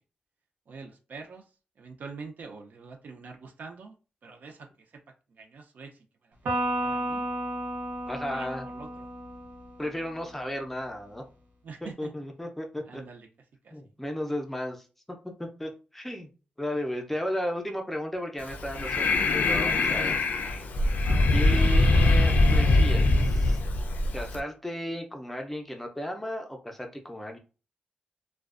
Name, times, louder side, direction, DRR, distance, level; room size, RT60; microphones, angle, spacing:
voice 1, 0.7-1.4 1.8-4.0 4.2-4.7 5.4-5.9 6.4-7.3 8.3-8.5 8.7-9.1 11.6-12.1 12.9-13.3 13.6-13.8 20.0-20.2 21.0-21.4, right 4 dB, 65° right, 3 dB, 0.4 m, -44 dB
Electric guitar, 6.4-10.0, right 1 dB, 85° right, 0.8 m, -32 dB
voice 2, 8.1-8.7 9.8-11.2 12.0-13.0 13.7-16.3 16.6-20.7 21.3-23.6 24.1-27.4, left 1 dB, 5° left, 3 dB, 0.4 m, -34 dB
Breathing, 18.4-24.4, left 2 dB, 65° left, 0.3 m, -22 dB
2.4 x 2.1 x 2.4 m, 0.34 s
wide cardioid pair, 130°, 3 cm